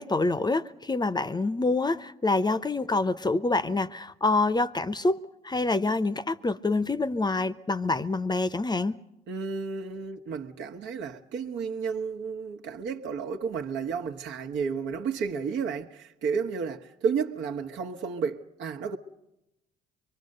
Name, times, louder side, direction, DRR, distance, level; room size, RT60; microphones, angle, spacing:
voice 1, 0.0-9.0, left 3 dB, 20° left, 0.8 m, -26 dB
voice 2, 9.3-19.0, right 6 dB, 70° right, 1.3 m, -32 dB
24.5 x 23.0 x 6.6 m
hypercardioid pair, 55°, 20 cm